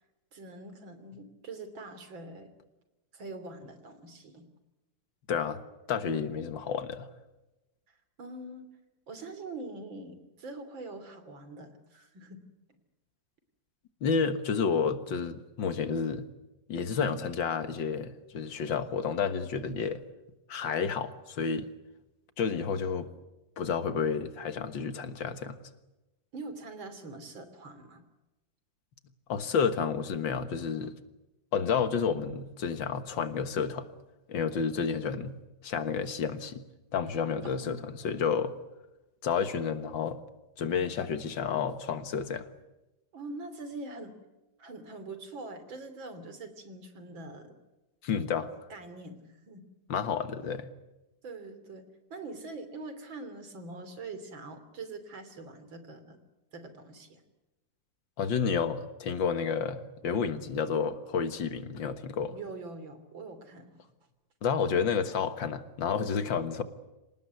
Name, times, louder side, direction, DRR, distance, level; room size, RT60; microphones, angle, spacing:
voice 1, 0.3-2.5 3.1-4.5 6.1-6.2 7.9-8.7 9.1-12.4 26.3-28.0 37.4-38.2 43.1-44.2 44.6-47.6 48.7-49.7 51.2-51.9 52.1-56.2 56.5-57.2 62.3-63.9, right 3 dB, 90° right, 3.8 m, -44 dB
voice 2, 5.3-5.6 5.9-7.1 14.0-16.2 16.7-20.0 20.5-21.7 22.4-23.1 23.6-25.6 29.3-30.9 31.5-33.9 34.3-35.3 35.6-36.6 36.9-38.5 39.2-40.2 40.6-42.5 48.0-48.5 49.9-50.7 58.2-62.4 64.4-66.6, left 6 dB, 80° left, 2.2 m, -30 dB
26.5 x 19.0 x 9.4 m
omnidirectional pair, 2.1 m